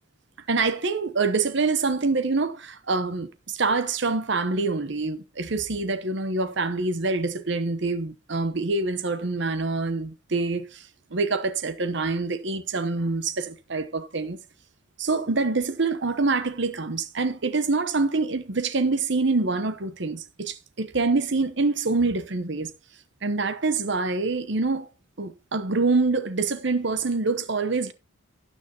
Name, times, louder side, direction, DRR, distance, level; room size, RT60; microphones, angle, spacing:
voice 1, 0.5-10.8 11.1-14.4 15.0-22.7 23.2-24.9 25.2-27.9, right 3 dB, 60° right, 0.9 m, -25 dB
12.5 x 9.2 x 2.8 m
head